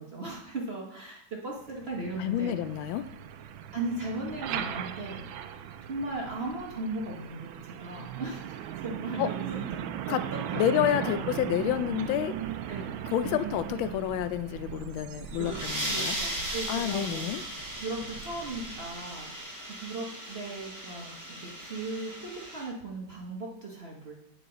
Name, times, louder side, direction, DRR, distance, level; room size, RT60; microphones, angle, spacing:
voice 1, 0.0-2.6 3.7-5.3 5.8-9.6 10.0-10.2 10.5-10.6 11.0-11.2 12.7-12.9 13.2-13.4 15.2-15.5 15.9-17.3 17.8-19.3 19.7-24.1, right 2 dB, 40° right, -2 dB, 0.9 m, -37 dB
Truck, 1.6-19.3, right 10 dB, 90° right, 1.4 m, -39 dB
voice 2, 2.2-3.0 9.2-9.3 10.1-10.2 10.6-12.3 13.1-16.1 16.7-17.4, left 11 dB, 90° left, 12 dB, 1.4 m, -29 dB
sound 1, 15.2-22.7, right 1 dB, 15° right, 0.8 m, -37 dB
8.9 x 4.9 x 3.8 m, 0.77 s
omnidirectional pair, 2.1 m